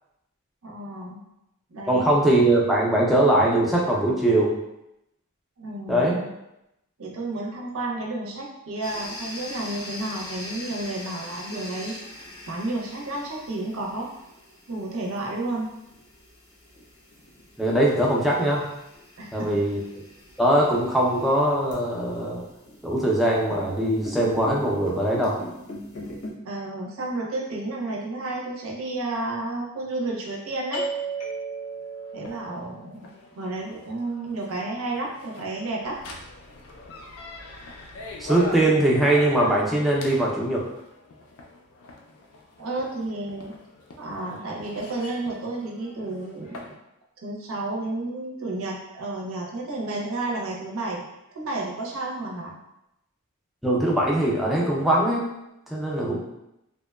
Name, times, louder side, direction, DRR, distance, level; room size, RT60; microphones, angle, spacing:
voice 1, 0.6-1.2 1.7-2.1 5.6-6.1 7.0-11.9 12.5-14.1 14.7-15.7 19.2-19.6 26.4-30.8 32.1-36.0 42.6-43.6 44.0-46.8 47.2-51.1 51.3-52.6, right 2 dB, 70° right, -1 dB, 0.5 m, -31 dB
voice 2, 1.9-4.5 5.9-6.2 17.6-18.7 19.3-19.8 20.4-22.4 22.8-25.4 38.2-40.7 53.6-55.3 55.7-56.2, right 1 dB, ahead, -4 dB, 0.4 m, -21 dB
sound 1, 8.8-26.3, left 1 dB, 90° left, 0.8 m, -42 dB
sound 2, 30.7-46.7, right 1 dB, 70° left, 0.4 m, -39 dB
2.8 x 2.1 x 2.2 m, 0.87 s
head